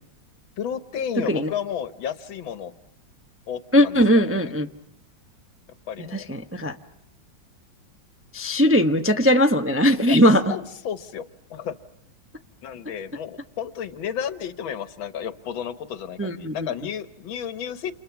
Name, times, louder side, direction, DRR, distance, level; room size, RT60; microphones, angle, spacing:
voice 1, 0.6-2.7 3.5-4.5 5.9-6.3 10.0-10.2 10.5-11.2 11.5-11.8 12.6-17.9, left 8 dB, 90° left, 13 dB, 2.0 m, -32 dB
voice 2, 3.7-4.7 6.1-6.7 8.3-10.4 16.2-16.7, equal, 15° right, 6 dB, 0.5 m, -19 dB
29.0 x 28.5 x 6.0 m, 0.76 s
omnidirectional pair, 2.1 m